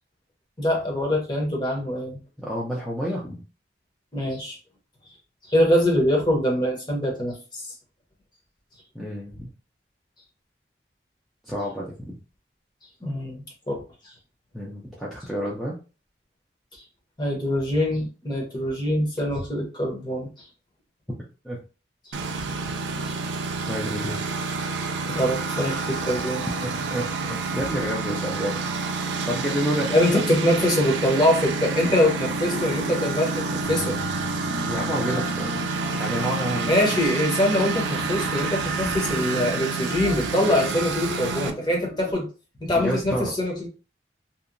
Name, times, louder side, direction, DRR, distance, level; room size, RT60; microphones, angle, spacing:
voice 1, 0.6-2.2 4.1-4.6 5.5-7.7 13.0-13.8 17.2-20.5 23.0-23.1 25.1-26.4 29.9-34.0 36.7-42.3 42.6-43.7, left 1 dB, 25° left, 0 dB, 0.8 m, -24 dB
voice 2, 2.4-3.4 8.9-9.5 11.4-12.1 14.5-15.7 21.4-21.6 23.7-24.2 26.6-28.7 29.3-29.9 31.8-32.0 34.7-35.7 35.9-36.8 42.7-43.3, equal, ahead, -6 dB, 0.4 m, -29 dB
Engine, 22.1-41.5, right 4 dB, 85° right, 0.4 m, -28 dB
sound 1, 32.4-42.1, equal, 70° left, 0.9 m, -39 dB
2.8 x 2.1 x 2.5 m, 0.33 s
head